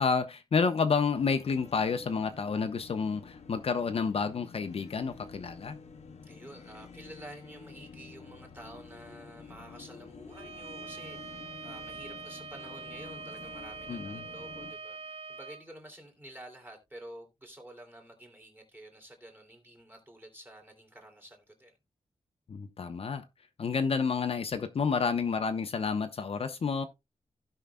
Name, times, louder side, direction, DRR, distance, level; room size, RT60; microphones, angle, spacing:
voice 1, 0.0-5.8 13.9-14.2 22.5-23.2 23.6-26.9, left 5 dB, 60° left, 0.8 m, -30 dB
sound 1, 1.1-14.7, left 5 dB, 80° left, 1.1 m, -50 dB
voice 2, 6.2-21.7, right 1 dB, 20° right, 2.7 m, -50 dB
Bowed string instrument, 10.3-15.6, right 4 dB, 65° right, 1.1 m, -44 dB
16.0 x 5.6 x 2.2 m
wide cardioid pair, 150°, 11 cm